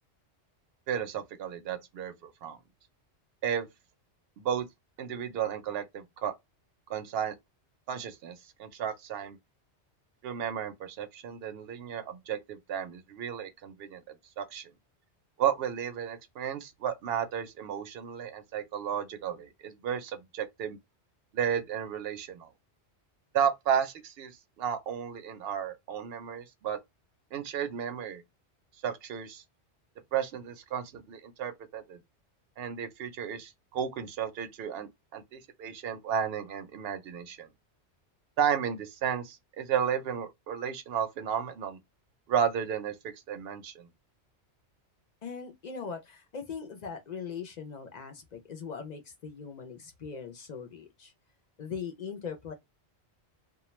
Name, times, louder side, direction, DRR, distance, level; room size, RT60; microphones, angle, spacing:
voice 1, 0.9-2.6 3.4-3.7 4.4-4.6 5.0-6.3 6.9-7.3 7.9-9.4 10.2-14.0 14.4-14.7 15.4-20.8 21.3-22.5 23.3-26.8 27.3-28.2 28.8-29.4 30.1-32.0 32.6-37.5 38.4-41.8 42.3-42.9 43.3-43.9, right 8 dB, 65° right, 0.7 m, -33 dB
voice 2, 45.2-51.1 51.6-52.5, left 6 dB, 55° left, 0.5 m, -40 dB
2.2 x 2.2 x 3.0 m
omnidirectional pair, 1.2 m